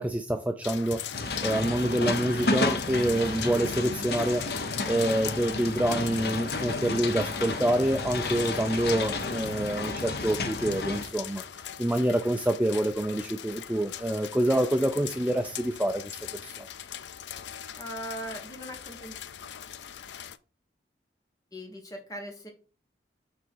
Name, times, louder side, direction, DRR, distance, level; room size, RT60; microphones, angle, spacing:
voice 1, 0.0-4.5 4.9-11.4 11.8-16.7, right 1 dB, 10° right, 0.4 m, -27 dB
sound 1, 0.6-20.4, left 10 dB, 85° left, 0.4 m, -41 dB
sound 2, 1.1-11.0, left 3 dB, 60° left, 0.9 m, -31 dB
sound 3, 2.4-4.1, right 1 dB, 25° right, 1.9 m, -45 dB
voice 2, 17.8-19.2 21.5-22.5, equal, 20° left, 1.4 m, -39 dB
6.0 x 4.0 x 4.6 m
head